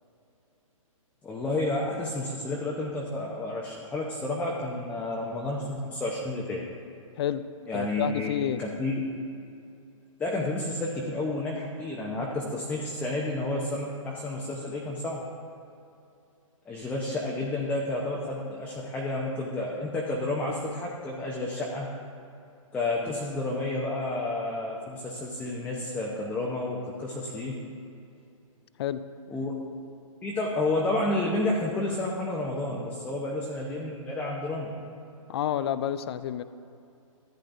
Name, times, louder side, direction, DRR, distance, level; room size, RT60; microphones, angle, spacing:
voice 1, 1.2-6.6 7.7-9.0 10.2-15.2 16.7-21.9 22.7-27.6 29.3-29.5 30.2-34.7, left 2 dB, 10° left, -3 dB, 0.8 m, -30 dB
voice 2, 7.7-8.6 28.8-29.0 35.3-36.4, left 10 dB, 45° left, 13 dB, 0.4 m, -29 dB
14.5 x 9.9 x 2.7 m, 2.6 s
hypercardioid pair, 140°, 18 cm